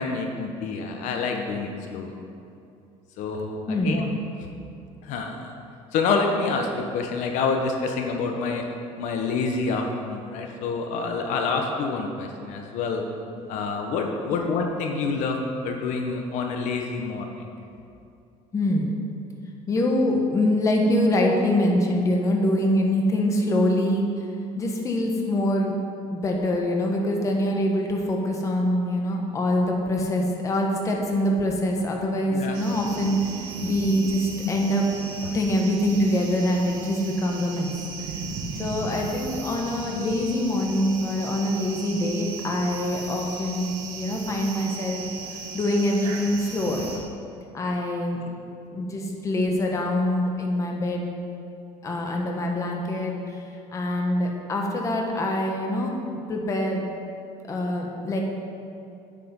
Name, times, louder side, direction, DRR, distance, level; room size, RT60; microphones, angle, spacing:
voice 1, 0.0-2.1 3.2-4.0 5.0-5.5 5.9-8.6 9.0-13.0 13.5-15.4 15.6-17.5 32.3-32.6 34.4-34.5 38.5-38.6, left 4 dB, 65° left, 3 dB, 1.0 m, -27 dB
voice 2, 3.7-4.1 14.3-14.4 18.5-18.9 19.7-24.3 24.5-25.7 26.1-34.8 35.2-37.7 38.0-38.1 38.6-45.0 45.3-46.9 47.5-48.2 48.7-51.1 51.8-56.0 56.3-56.8 57.5-58.2, left 1 dB, 25° left, 1 dB, 1.2 m, -24 dB
sound 1, 32.5-47.0, right 4 dB, 85° right, 1.6 m, -37 dB
8.4 x 8.4 x 5.4 m, 2.6 s
cardioid pair, 155°, 13 cm